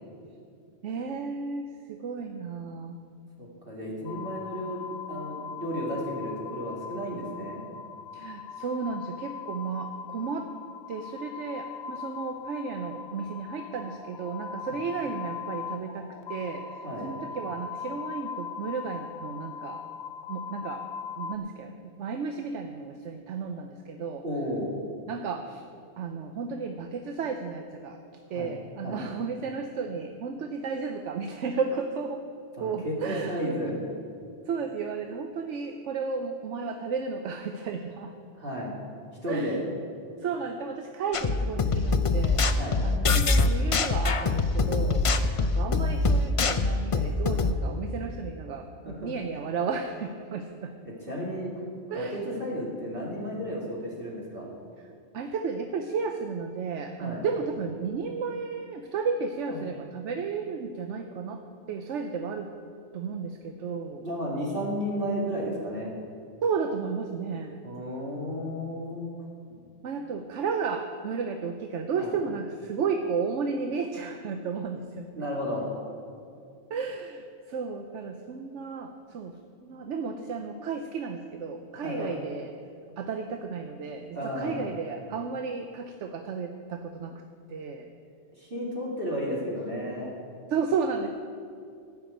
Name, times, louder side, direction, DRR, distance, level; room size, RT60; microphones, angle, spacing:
voice 1, 0.8-3.0 8.1-10.5 10.9-19.8 20.3-20.8 21.2-24.2 25.1-25.6 26.0-28.0 28.3-32.2 32.6-33.6 34.5-38.1 39.3-39.6 40.2-42.5 42.8-45.0 45.4-50.7 51.9-52.2 55.1-61.4 61.7-62.5 62.9-64.0 66.4-67.6 69.8-75.1 76.7-82.5 83.0-87.2 87.5-87.9 90.5-91.1, right 5 dB, 90° right, 6 dB, 1.0 m, -33 dB
voice 2, 3.4-7.7 14.7-14.8 16.8-17.1 24.2-24.7 28.3-28.5 28.8-29.0 32.6-33.8 38.3-38.8 39.2-39.6 42.6-42.8 48.8-49.1 50.9-51.5 51.9-54.5 57.0-57.2 59.5-59.6 64.0-65.9 67.6-69.1 72.0-72.1 75.2-75.8 81.7-82.1 84.1-84.6 88.3-90.1, equal, 50° right, -5 dB, 2.6 m, -33 dB
sound 1, 4.1-21.4, left 7 dB, 70° left, 0.9 m, -40 dB
sound 2, 41.1-47.5, left 3 dB, 40° left, 0.5 m, -24 dB
15.0 x 6.1 x 8.9 m, 2.4 s
omnidirectional pair, 1.2 m